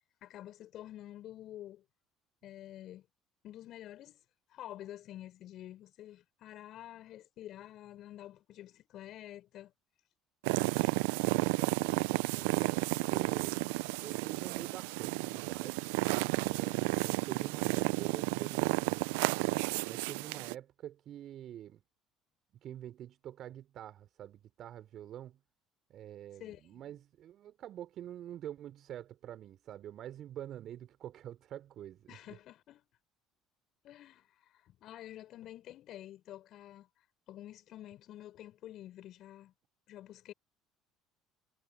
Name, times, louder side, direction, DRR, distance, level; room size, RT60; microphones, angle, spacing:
voice 1, 0.2-1.8 2.4-3.0 3.4-4.2 4.5-9.7 10.7-11.0 26.4-26.8 32.1-32.8 33.8-39.5 39.9-40.3, left 13 dB, 55° left, 7.2 m, -49 dB
sound 1, 10.4-20.6, right 27 dB, 75° right, 0.7 m, -32 dB
voice 2, 11.4-15.8 16.4-21.8 22.6-25.4 25.9-32.2, right 11 dB, 55° right, 3.8 m, -47 dB
hypercardioid pair, 60°, 0 cm